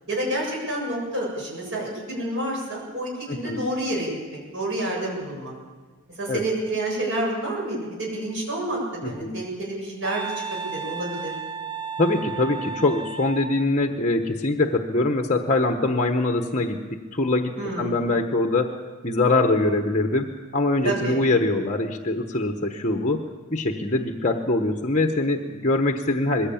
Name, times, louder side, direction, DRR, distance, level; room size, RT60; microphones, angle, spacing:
voice 1, 0.1-5.5 6.2-11.4 17.6-18.1 20.8-21.2, right 1 dB, 60° right, -3 dB, 7.5 m, -29 dB
voice 2, 3.3-3.6 6.3-6.4 9.0-9.3 12.0-18.7 19.0-26.5, left 2 dB, 35° left, 5 dB, 1.1 m, -23 dB
Wind instrument woodwind instrument, 10.0-13.7, right 6 dB, 20° right, 0.6 m, -34 dB
21.0 x 16.0 x 8.6 m, 1.4 s
head